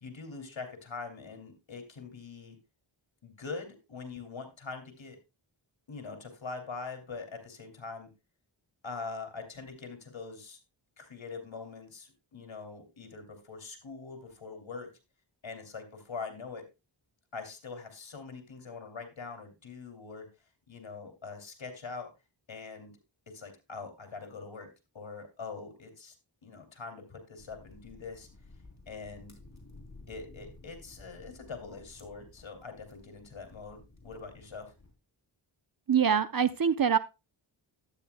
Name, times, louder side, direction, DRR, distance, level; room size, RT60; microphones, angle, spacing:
voice 1, 0.0-2.6 3.2-5.2 5.9-8.1 8.8-10.6 11.0-14.9 15.4-16.6 17.3-20.3 20.7-22.1 22.5-22.9 23.3-24.7 24.9-26.1 26.4-28.3 28.9-29.3 30.1-34.7, left 4 dB, 65° left, 2.7 m, -43 dB
sound 1, 27.4-34.9, left 2 dB, 35° left, 3.2 m, -54 dB
voice 2, 35.9-37.0, right 7 dB, 45° right, 0.7 m, -24 dB
12.0 x 9.1 x 2.2 m
cardioid pair, 45°, 50 cm